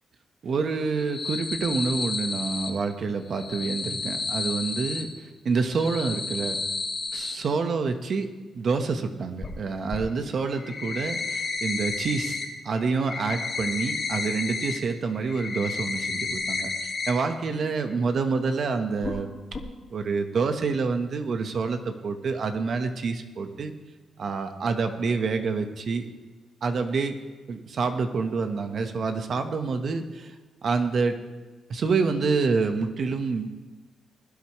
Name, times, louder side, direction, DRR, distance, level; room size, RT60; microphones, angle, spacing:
voice 1, 0.4-6.6 7.1-8.3 8.5-12.4 12.6-19.3 19.9-23.7 24.2-26.0 26.6-27.1 27.5-30.3 30.6-31.2 31.7-33.5, right 4 dB, 55° right, 7 dB, 1.3 m, -27 dB
sound 1, 0.9-2.7 3.3-5.0 5.6-7.3 9.4-9.5 9.9-10.0 10.4-12.4 12.7-14.8 15.1-17.1 17.4-17.5 17.9-18.0 19.0-19.2 19.5-19.6, left 3 dB, 35° left, 2.3 m, -31 dB
20.0 x 12.0 x 3.2 m, 1.3 s
cardioid pair, 95°, 0 cm